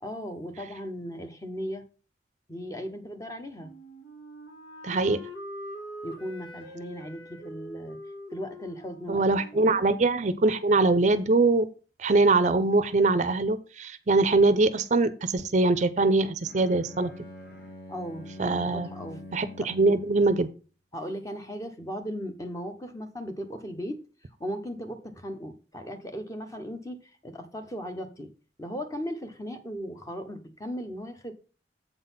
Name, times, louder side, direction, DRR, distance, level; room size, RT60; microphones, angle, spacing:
voice 1, 0.0-1.8 2.5-3.7 6.0-8.0 8.3-9.2 9.5-9.7 17.9-19.2 20.9-24.0 24.4-28.3 28.6-31.3, equal, 20° left, 6 dB, 0.9 m, -37 dB
Wind instrument woodwind instrument, 3.6-10.4, equal, 85° left, 1.7 m, -44 dB
voice 2, 4.8-5.2 9.1-11.7 12.0-17.1 18.4-18.9 19.3-20.5, right 3 dB, 40° right, 12 dB, 0.5 m, -23 dB
Bowed string instrument, 16.4-20.5, left 1 dB, 55° left, 1.7 m, -45 dB
8.0 x 4.0 x 5.6 m, 0.36 s
head